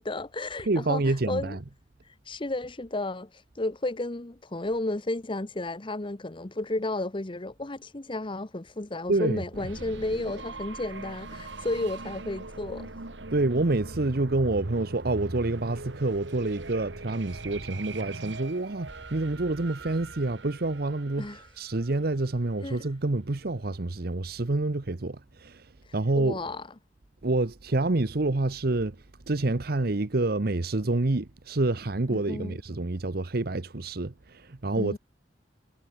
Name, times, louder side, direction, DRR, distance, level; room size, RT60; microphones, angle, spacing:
voice 1, 0.0-1.6 2.1-12.9 21.2-21.4 22.6-22.9 25.9-26.7 32.1-32.6 34.8-35.0, left 2 dB, 30° left, 1.0 m, -33 dB
voice 2, 0.6-1.6 9.1-9.4 13.3-26.4 27.2-29.0 29.3-35.0, right 2 dB, 60° right, 1.0 m, -28 dB
sound 1, 9.5-22.2, right 2 dB, 85° right, 2.2 m, -41 dB
head